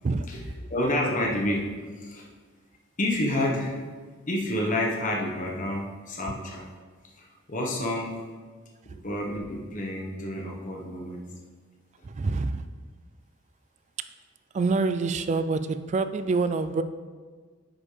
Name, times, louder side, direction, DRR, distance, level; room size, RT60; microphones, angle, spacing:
voice 1, 0.7-2.3 3.0-3.8 4.3-6.6 7.2-8.2 9.0-11.2, left 1 dB, 40° left, -1 dB, 1.2 m, -29 dB
voice 2, 12.0-12.7 14.5-16.8, right 3 dB, 35° right, 11 dB, 0.3 m, -26 dB
9.7 x 5.4 x 3.4 m, 1.5 s
head